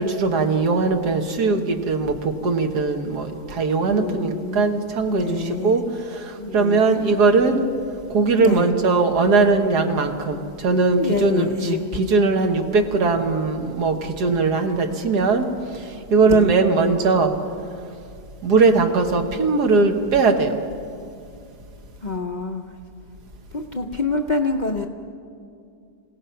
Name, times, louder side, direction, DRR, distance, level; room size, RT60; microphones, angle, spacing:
voice 1, 0.0-5.3 5.6-5.8 6.5-7.6 8.1-15.5 16.1-17.3 18.4-20.5, right 3 dB, 75° right, 5 dB, 1.9 m, -19 dB
voice 2, 3.9-4.7 5.1-5.8 6.4-7.0 8.4-8.7 10.9-11.9 16.2-16.6 22.0-22.8 23.5-24.9, left 3 dB, 45° left, 3 dB, 0.6 m, -27 dB
26.5 x 17.5 x 5.8 m, 2.4 s
omnidirectional pair, 1.7 m